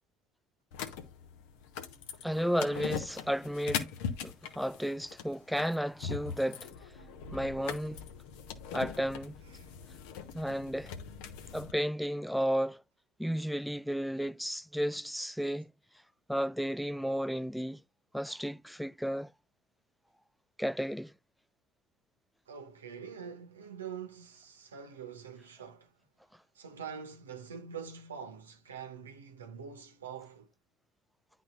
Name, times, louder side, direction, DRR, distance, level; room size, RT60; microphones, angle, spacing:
sound 1, 0.7-11.7, left 7 dB, 65° left, 0.9 m, -41 dB
voice 1, 2.2-3.9 4.2-6.7 7.3-8.0 8.7-9.4 10.3-10.9 11.5-12.8 13.2-15.7 16.3-17.8 18.1-19.3 20.6-21.1, equal, ahead, 0.3 m, -33 dB
voice 2, 22.5-25.9 26.5-30.5, right 7 dB, 85° right, 1.0 m, -45 dB
10.5 x 3.9 x 2.5 m
figure-of-eight pair, 60°, 0 cm